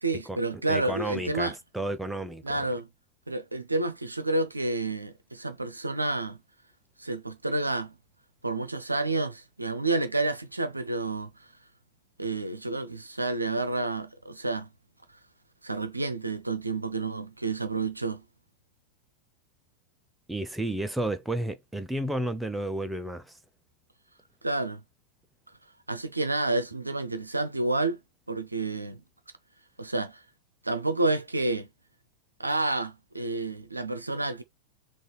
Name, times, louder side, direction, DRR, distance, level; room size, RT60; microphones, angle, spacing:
voice 1, 0.0-1.5 2.4-2.9 3.3-6.4 7.0-7.9 8.4-11.3 12.2-14.7 15.6-18.2 24.4-24.8 25.9-28.0 28.3-29.0 29.8-30.2 30.6-31.7 32.4-34.4, right 2 dB, 80° right, 0.5 m, -29 dB
voice 2, 0.7-2.6 20.3-23.4, right 1 dB, 5° right, 0.5 m, -32 dB
3.9 x 2.5 x 3.0 m
figure-of-eight pair, 90°, 0 cm